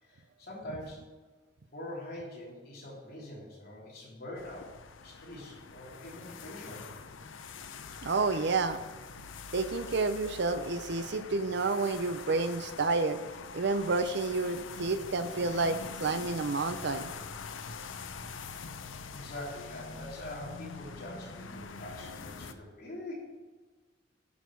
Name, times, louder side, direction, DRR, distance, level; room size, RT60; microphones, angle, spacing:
voice 1, 0.0-1.1 1.7-4.7 5.0-6.9 19.1-23.1, left 1 dB, 50° left, -4 dB, 3.4 m, -44 dB
sound 1, 4.4-22.5, left 5 dB, 85° left, 0.6 m, -44 dB
voice 2, 8.0-8.8 9.5-13.2 13.5-17.1, right 3 dB, 60° right, 11 dB, 0.6 m, -30 dB
11.5 x 6.4 x 4.6 m, 1.3 s
head